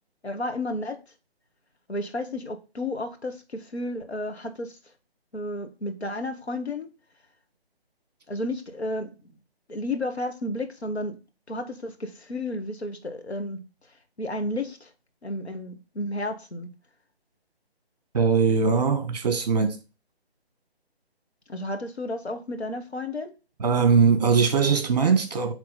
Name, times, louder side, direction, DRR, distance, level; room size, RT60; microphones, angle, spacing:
voice 1, 0.2-1.0 1.9-4.8 5.3-6.9 8.3-9.3 9.7-11.2 11.5-13.6 14.2-14.9 15.2-16.7 21.5-23.3, left 1 dB, 85° left, 1.5 m, -32 dB
voice 2, 18.1-19.8 23.6-25.5, right 5 dB, 40° right, 1.3 m, -21 dB
8.2 x 3.4 x 3.9 m
figure-of-eight pair, 150°, 32 cm